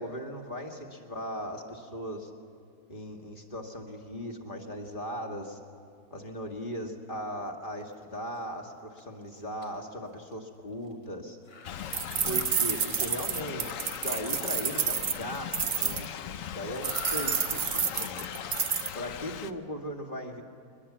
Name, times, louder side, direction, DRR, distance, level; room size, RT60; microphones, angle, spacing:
voice 1, 0.0-2.3 2.9-5.6 6.1-11.4 12.2-18.3 18.9-20.4, equal, 35° left, 2 dB, 2.1 m, -38 dB
sound 1, 7.8-8.0 8.4-8.5 9.0-9.2 9.6-9.7 9.9-10.0 10.2-10.3 10.8-11.0 11.4-12.3 13.0-13.6 15.3-15.9 16.2-16.3 16.7-18.1, left 4 dB, 80° left, 3.0 m, -45 dB
Thunder / Rain, 11.6-19.5, left 9 dB, 65° left, 1.1 m, -39 dB
sound 2, 11.9-16.1 16.8-18.9, right 7 dB, 50° right, 0.7 m, -29 dB
23.0 x 21.0 x 7.4 m, 2.3 s
omnidirectional pair, 1.6 m